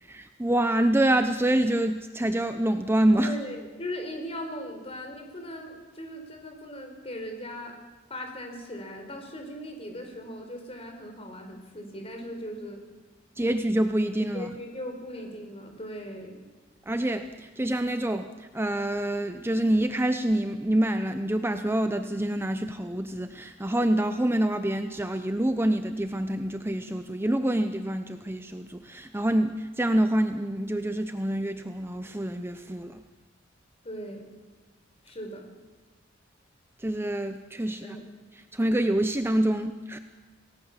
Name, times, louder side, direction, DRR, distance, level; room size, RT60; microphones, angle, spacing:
voice 1, 0.0-3.3 13.4-14.5 16.9-33.0 36.8-38.0 38.5-40.0, right 1 dB, 10° right, 8 dB, 0.8 m, -26 dB
voice 2, 3.2-7.8 8.1-12.8 14.3-16.4 33.8-34.2 35.0-35.5 37.8-38.0, equal, 30° left, 4 dB, 4.8 m, -38 dB
28.0 x 18.5 x 7.4 m, 1.3 s
head